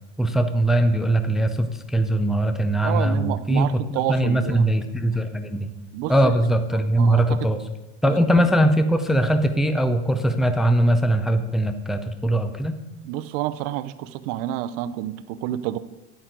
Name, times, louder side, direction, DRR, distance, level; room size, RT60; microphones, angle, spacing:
voice 1, 0.2-5.7 6.1-7.7 8.0-12.8, right 1 dB, ahead, 8 dB, 0.4 m, -21 dB
voice 2, 2.8-4.6 5.9-6.1 7.0-7.5 8.0-8.1 12.2-12.3 13.1-15.8, right 13 dB, 60° right, 12 dB, 0.6 m, -29 dB
10.0 x 8.9 x 3.9 m, 1.0 s
supercardioid pair, 135°, 33 cm